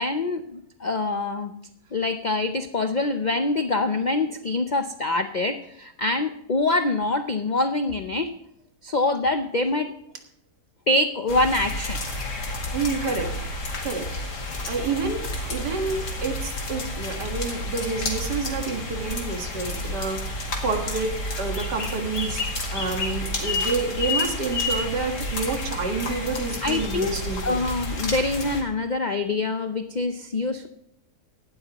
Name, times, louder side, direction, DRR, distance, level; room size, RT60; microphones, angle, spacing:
voice 1, 0.0-1.5 1.9-8.3 8.8-9.9 10.9-12.0 26.6-27.1 27.4-30.7, left 2 dB, 70° left, 8 dB, 0.4 m, -25 dB
sound 1, 11.3-28.6, left 2 dB, 85° left, 2.7 m, -30 dB
voice 2, 12.7-13.3 13.8-14.1 14.7-15.2 15.5-20.3 20.6-21.1 21.4-22.4 22.7-27.6, right 4 dB, 85° right, 4 dB, 2.3 m, -28 dB
18.0 x 12.0 x 3.0 m, 0.77 s
omnidirectional pair, 1.7 m